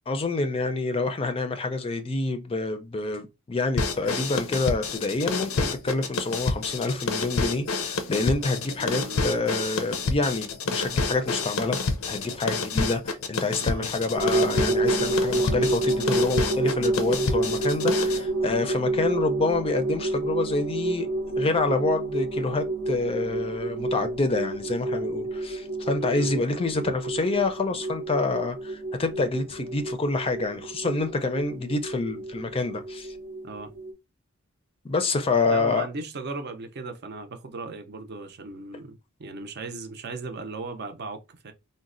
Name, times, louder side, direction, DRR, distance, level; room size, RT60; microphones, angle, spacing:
voice 1, 0.1-11.8 12.1-21.1 21.4-33.1 34.8-35.9, left 3 dB, 25° left, 0.4 m, -27 dB
sound 1, 3.8-18.2, left 4 dB, 85° left, 0.5 m, -29 dB
voice 2, 8.8-9.4 13.6-13.9 26.0-26.3 33.4-33.7 35.5-41.5, right 3 dB, 50° right, 0.6 m, -37 dB
sound 2, 14.1-33.9, right 2 dB, 80° right, 0.8 m, -29 dB
3.9 x 2.1 x 2.5 m
head